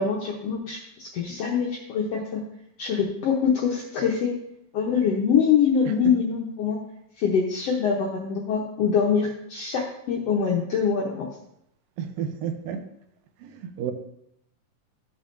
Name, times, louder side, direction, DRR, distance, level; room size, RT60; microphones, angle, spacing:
voice 1, 0.0-2.4 2.8-4.3 4.7-6.8 7.2-11.3, left 6 dB, 75° left, -1 dB, 1.4 m, -24 dB
voice 2, 12.0-12.8 13.5-13.9, right 8 dB, 85° right, 7 dB, 2.4 m, -31 dB
14.0 x 5.5 x 2.6 m, 0.78 s
omnidirectional pair, 3.9 m